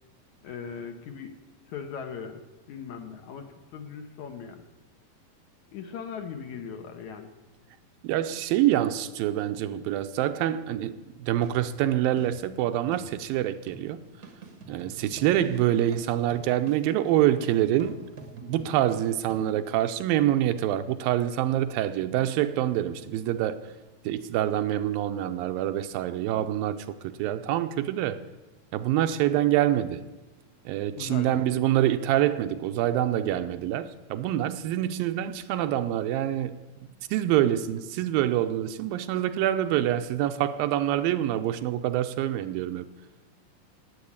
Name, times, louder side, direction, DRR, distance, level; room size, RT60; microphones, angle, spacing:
voice 1, 0.4-1.4 1.7-2.4 2.7-4.6 5.7-7.3 31.0-31.4, left 6 dB, 65° left, 2.3 m, -39 dB
voice 2, 8.0-14.0 14.7-18.0 18.4-23.7 24.1-26.8 27.0-28.2 28.7-30.0 30.7-36.6 37.1-42.9, right 12 dB, 80° right, 2.5 m, -26 dB
sound 1, 11.4-19.6, right 3 dB, 50° right, 1.1 m, -47 dB
18.0 x 8.0 x 8.7 m
omnidirectional pair, 4.2 m